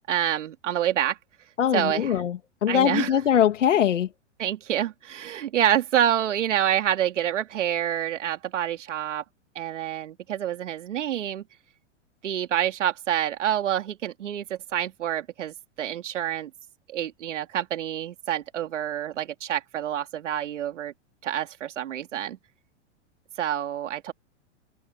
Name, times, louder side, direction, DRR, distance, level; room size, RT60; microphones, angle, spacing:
voice 1, 0.1-1.2 1.7-2.1 2.7-3.1 4.4-9.2 9.5-11.4 12.2-16.5 16.9-20.9 21.2-22.4 23.4-24.1, right 11 dB, 80° right, 3.1 m, -27 dB
voice 2, 1.6-4.1, left 9 dB, 85° left, 2.2 m, -22 dB
open air
hypercardioid pair, 110°, 36 cm